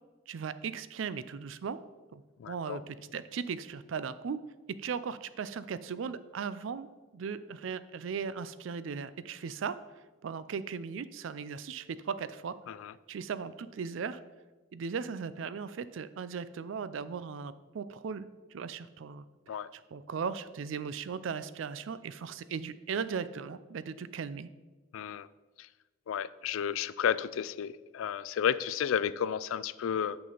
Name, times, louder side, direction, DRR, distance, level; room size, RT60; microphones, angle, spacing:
voice 1, 0.3-1.8 2.1-2.2 2.5-4.4 4.8-6.9 7.1-9.8 10.2-12.6 13.1-14.2 14.7-18.3 18.5-19.3 19.5-24.5, right 6 dB, 75° right, 15 dB, 0.4 m, -37 dB
voice 2, 2.4-2.8 12.7-12.9 19.5-19.7 24.9-25.3 25.6-25.7 26.1-30.2, left 8 dB, 85° left, 17 dB, 0.3 m, -32 dB
9.2 x 6.0 x 3.9 m, 1.3 s
head